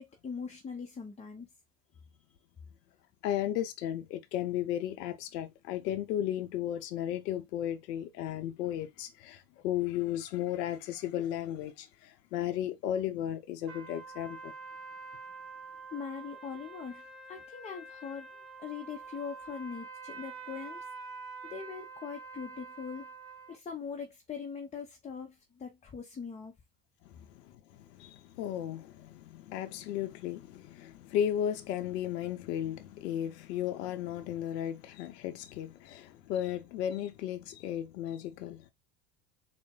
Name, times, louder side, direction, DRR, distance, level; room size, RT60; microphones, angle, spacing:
voice 1, 0.0-1.5 15.9-20.8 21.4-23.1 23.5-26.5, left 6 dB, 15° left, 0.5 m, -41 dB
voice 2, 3.2-14.5 27.1-38.7, left 11 dB, 90° left, 0.7 m, -35 dB
sound 1, 13.7-23.6, right 4 dB, 30° right, 1.1 m, -46 dB
4.1 x 2.1 x 3.6 m
supercardioid pair, 100°, 47 cm